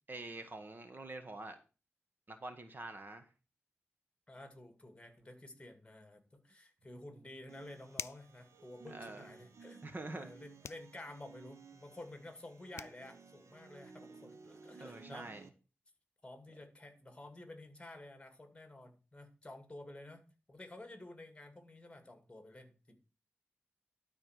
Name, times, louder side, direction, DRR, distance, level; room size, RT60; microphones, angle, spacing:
voice 1, 0.1-1.6 2.3-3.3 8.9-9.3 9.8-10.3 14.8-15.4, right 2 dB, 45° right, 1.5 m, -46 dB
voice 2, 4.3-9.9 10.1-15.3 16.2-23.0, left 1 dB, 20° left, 2.4 m, -52 dB
sound 1, 7.5-15.5, right 4 dB, 85° right, 1.2 m, -57 dB
sound 2, 8.0-8.4 10.6-10.9 12.4-12.5 12.8-13.0, left 7 dB, 80° left, 0.4 m, -44 dB
12.0 x 4.4 x 6.5 m
wide cardioid pair, 70°, 5 cm